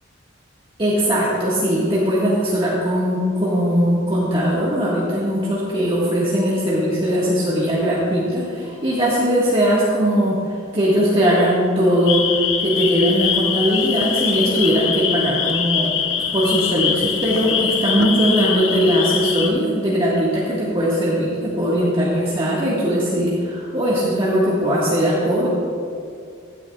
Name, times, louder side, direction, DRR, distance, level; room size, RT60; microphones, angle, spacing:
voice 1, 0.8-10.4 10.7-16.0 16.3-25.5, equal, 25° right, -7 dB, 1.6 m, -19 dB
sound 1, 12.1-19.5, left 7 dB, 65° left, 0.7 m, -23 dB
16.0 x 10.5 x 2.3 m, 2.3 s
head